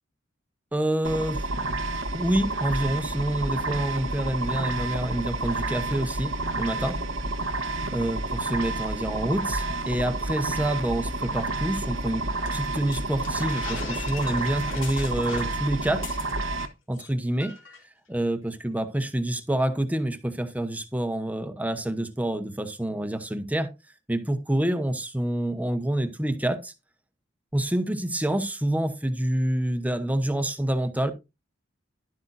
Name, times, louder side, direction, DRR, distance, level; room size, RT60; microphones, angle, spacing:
voice 1, 0.7-1.4 2.1-7.0 7.9-12.2 12.5-16.0 16.9-17.5 18.1-23.7 24.1-26.7 27.5-31.1, right 1 dB, 10° right, 0.9 m, -27 dB
sound 1, 1.0-16.7, right 2 dB, 80° right, 1.1 m, -30 dB
sound 2, 12.5-16.7 16.9-17.1 17.4-17.8, left 4 dB, 80° left, 2.7 m, -40 dB
11.5 x 8.0 x 2.6 m
head